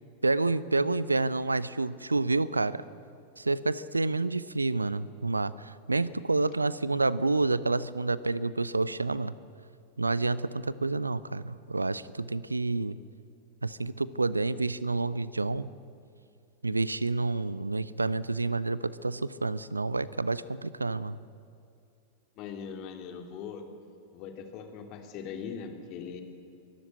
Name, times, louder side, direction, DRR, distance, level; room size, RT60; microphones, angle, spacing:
voice 1, 0.2-2.8 3.4-9.3 10.0-13.0 13.6-15.7 16.6-21.2, right 3 dB, 80° right, 19 dB, 0.5 m, -29 dB
voice 2, 22.4-23.6 24.1-26.2, left 6 dB, 40° left, 5 dB, 2.4 m, -40 dB
23.5 x 13.0 x 8.6 m, 2.5 s
figure-of-eight pair, 90°, 0 cm